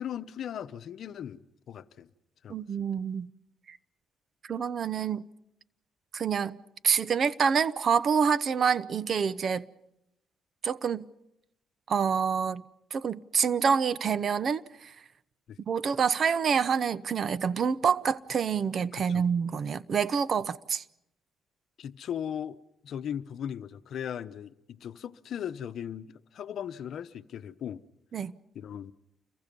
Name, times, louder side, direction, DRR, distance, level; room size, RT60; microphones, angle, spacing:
voice 1, 0.0-2.1 2.4-2.6 15.5-15.6 18.9-19.2 21.8-22.6 22.8-27.8 28.5-28.9, left 9 dB, 65° left, 0.9 m, -38 dB
voice 2, 2.5-3.3 3.7-3.8 4.5-5.2 6.1-6.6 6.8-9.6 10.6-11.1 11.9-12.6 12.9-14.9 15.7-20.8 28.1-28.3, right 6 dB, 55° right, 0.8 m, -27 dB
29.5 x 23.0 x 5.4 m
cardioid pair, 90°, 0 cm